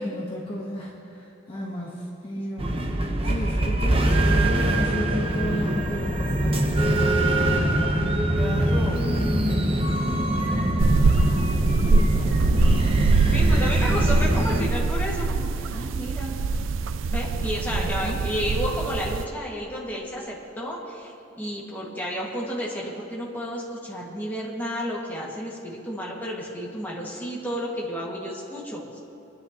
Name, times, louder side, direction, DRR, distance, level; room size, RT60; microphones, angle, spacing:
voice 1, 0.0-7.8 8.5-11.0 11.3-13.7 17.7-18.2, equal, 30° left, -4 dB, 1.3 m, -35 dB
sound 1, 2.6-14.7, right 1 dB, 30° right, 1.0 m, -23 dB
voice 2, 8.3-9.0 13.3-16.4 17.1-29.0, equal, 10° left, -5 dB, 2.0 m, -32 dB
sound 2, 10.8-19.3, right 4 dB, 85° right, 0.4 m, -23 dB
26.5 x 9.9 x 3.0 m, 2.8 s
head